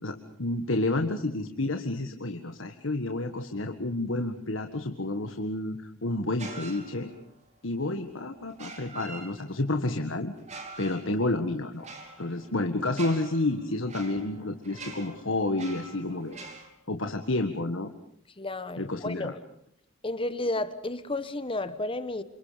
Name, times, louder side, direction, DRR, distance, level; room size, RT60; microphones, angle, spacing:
voice 1, 0.0-7.1 7.6-10.3 10.8-11.9 12.2-16.4 16.9-17.9 18.8-19.3, left 2 dB, 65° left, 1.8 m, -30 dB
sound 1, 6.4-7.3 8.5-9.8 10.4-16.7, right 3 dB, 35° right, 4.8 m, -45 dB
voice 2, 18.4-19.4 20.0-22.2, left 2 dB, 25° left, 1.2 m, -32 dB
29.0 x 27.5 x 5.2 m
head